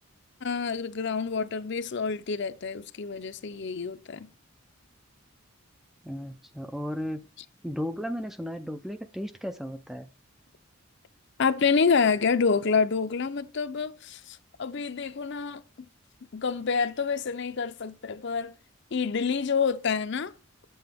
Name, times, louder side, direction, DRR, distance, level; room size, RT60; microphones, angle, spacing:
voice 1, 0.4-4.3 11.4-15.9 16.3-18.5 18.9-20.3, left 5 dB, 55° left, 0.6 m, -27 dB
voice 2, 6.0-7.3 7.6-10.1, equal, ahead, 0.4 m, -35 dB
8.1 x 7.8 x 3.5 m
head